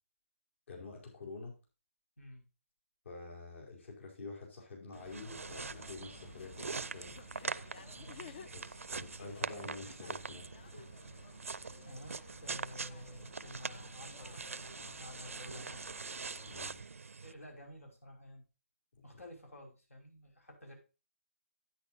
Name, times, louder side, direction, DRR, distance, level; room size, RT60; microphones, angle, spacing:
voice 1, 0.7-1.6 3.0-7.2 8.5-10.4 16.5-16.8 18.9-19.0, left 3 dB, 60° left, 0 dB, 4.9 m, -48 dB
sound 1, 4.9-17.3, right 4 dB, 75° right, 0.6 m, -43 dB
sound 2, 5.0-16.8, left 6 dB, 40° left, 0.8 m, -56 dB
voice 2, 8.0-8.4 11.8-15.8 17.2-18.4 19.0-20.7, left 1 dB, 80° left, 2 dB, 5.6 m, -51 dB
10.5 x 9.6 x 2.7 m, 0.30 s
figure-of-eight pair, 150°, 7 cm